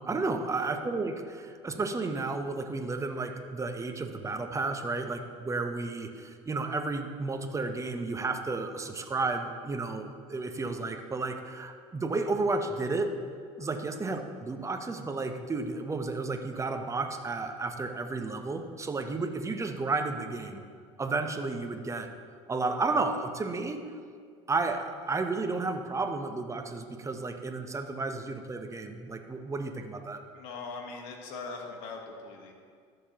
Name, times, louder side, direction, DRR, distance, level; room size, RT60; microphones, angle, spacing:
voice 1, 0.0-13.1 13.6-20.6 21.0-22.1 22.5-23.8 24.5-30.2, right 3 dB, 20° right, 6 dB, 0.9 m, -32 dB
voice 2, 30.3-32.5, left 4 dB, 75° left, 3 dB, 1.4 m, -41 dB
14.0 x 6.7 x 3.0 m, 2.1 s
hypercardioid pair, 75°, 15 cm